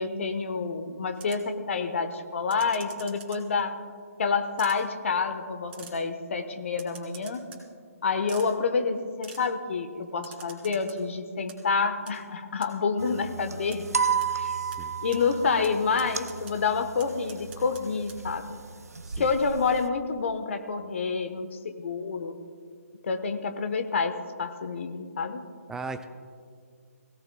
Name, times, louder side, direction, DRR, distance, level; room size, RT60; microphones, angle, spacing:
voice 1, 0.0-3.8 4.2-7.5 8.0-13.9 14.3-14.5 15.0-18.6 19.2-22.4 23.0-25.4, left 5 dB, 55° left, 8 dB, 1.1 m, -28 dB
sound 1, 1.1-1.5 2.5-3.6 4.6-4.8 5.7-6.0 6.7-7.6 8.3-8.5 9.2-9.4 10.2-11.0 11.3-11.6 12.1-12.2 12.6-12.7 13.7-13.8 14.2-14.3 14.7-14.8 15.1-15.2 15.6-15.7 16.0-16.5 17.0-17.8 18.1-18.2, right 6 dB, 40° right, 2.8 m, -46 dB
sound 2, 13.0-19.9, right 6 dB, 75° right, 0.7 m, -33 dB
voice 2, 14.4-15.0 19.0-19.3 25.7-26.0, right 3 dB, 5° right, 8 dB, 0.5 m, -38 dB
22.0 x 17.0 x 2.3 m, 2.1 s
figure-of-eight pair, 140°, 8 cm